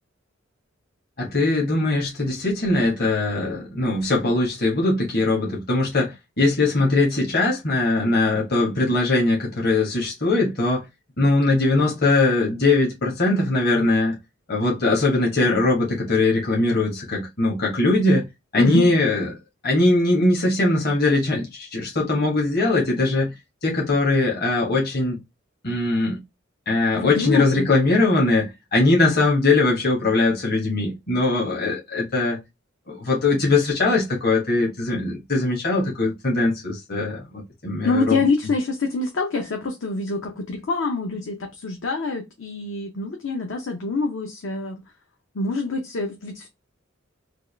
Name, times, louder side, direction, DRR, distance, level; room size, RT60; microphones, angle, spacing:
voice 1, 1.2-10.8 11.2-14.1 14.5-18.3 18.5-19.3 19.6-23.3 23.6-25.2 25.6-26.2 26.7-32.4 32.9-38.5, left 2 dB, 50° left, 1.3 m, -21 dB
voice 2, 18.5-18.9 27.0-27.7 37.8-44.8 45.3-46.5, left 3 dB, 70° left, 0.7 m, -25 dB
3.4 x 2.4 x 3.3 m
head